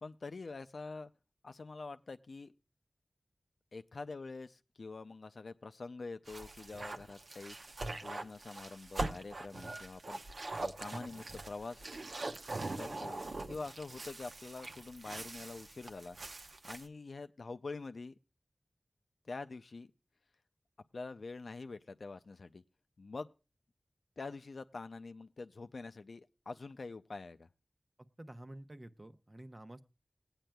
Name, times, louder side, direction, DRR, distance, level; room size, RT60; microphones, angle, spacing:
voice 1, 0.0-1.1 1.4-2.5 3.7-7.6 8.0-10.2 10.6-11.8 12.8-18.1 19.3-19.9 20.9-22.6 23.0-23.3 24.2-27.5, left 3 dB, 85° left, 10 dB, 0.4 m, -46 dB
sound 1, 6.3-16.9, right 2 dB, 75° right, 0.7 m, -42 dB
voice 2, 28.0-29.8, right 1 dB, 35° right, 9 dB, 0.7 m, -50 dB
19.5 x 8.9 x 2.2 m, 0.30 s
wide cardioid pair, 70°, 0 cm